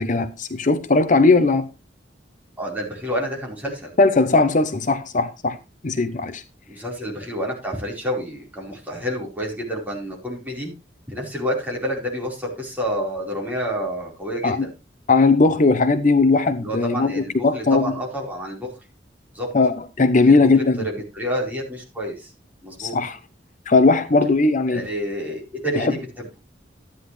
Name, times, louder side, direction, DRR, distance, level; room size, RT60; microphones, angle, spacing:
voice 1, 0.0-1.7 4.0-5.6 5.8-6.4 14.4-14.6 15.1-17.9 19.5-20.8 22.8-23.2 23.7-24.8 25.8-25.9, left 3 dB, 45° left, 0.7 m, -18 dB
voice 2, 2.6-3.9 6.7-10.7 11.1-14.7 16.6-18.7 19.3-19.5 20.1-22.3 22.6-23.0 24.7-26.3, equal, 10° right, 4.5 m, -29 dB
13.0 x 9.7 x 3.3 m
head